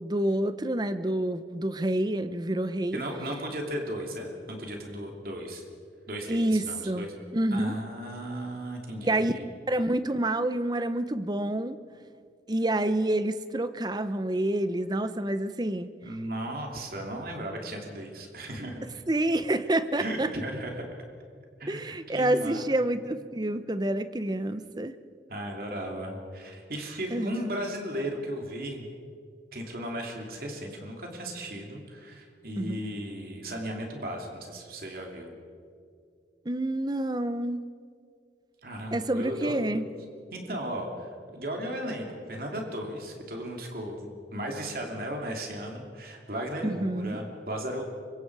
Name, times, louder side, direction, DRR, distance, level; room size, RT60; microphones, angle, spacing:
voice 1, 0.0-3.0 6.3-7.1 7.3-7.7 9.0-9.3 9.7-11.8 12.5-15.9 19.1-20.3 21.7-24.9 27.1-27.6 32.6-32.8 36.5-37.6 38.9-39.9 46.6-47.2, right 1 dB, 25° right, 12 dB, 0.7 m, -28 dB
voice 2, 2.9-5.6 6.1-7.1 7.5-9.5 16.0-18.8 20.0-20.8 21.6-22.7 25.3-28.8 29.5-35.3 38.6-39.6 40.3-47.8, right 1 dB, 55° right, 1 dB, 2.9 m, -36 dB
25.5 x 23.0 x 4.8 m, 2.3 s
head